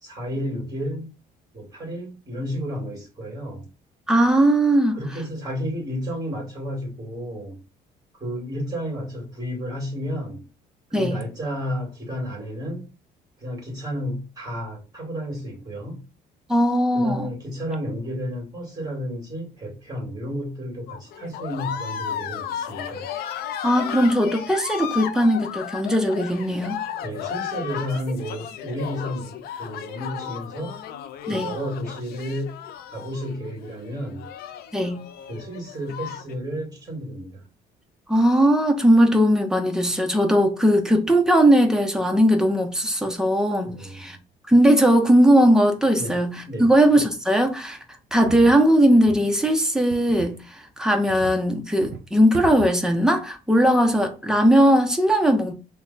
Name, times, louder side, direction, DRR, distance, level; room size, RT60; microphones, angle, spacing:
voice 1, 0.0-1.1 1.5-3.7 4.9-7.6 8.2-10.4 10.9-12.9 13.4-16.0 16.9-23.1 27.0-30.8 31.3-32.6 32.9-34.3 35.3-37.5 43.6-44.2 45.9-46.2 46.5-46.6, equal, 20° right, 2.0 m, -32 dB
voice 2, 4.1-5.0 10.9-11.2 16.5-17.3 23.6-26.8 31.3-31.5 34.7-35.0 38.1-44.2 44.5-47.8 48.1-50.4 50.8-55.5, equal, 5° right, 0.7 m, -19 dB
sound 1, 20.9-36.3, left 9 dB, 70° left, 0.4 m, -34 dB
sound 2, 48.2-48.6 49.1-49.3 49.9-50.4 51.1-51.4 51.8-52.1 52.3-52.8, right 5 dB, 75° right, 0.7 m, -36 dB
3.2 x 2.2 x 3.9 m
cardioid pair, 110°, 17 cm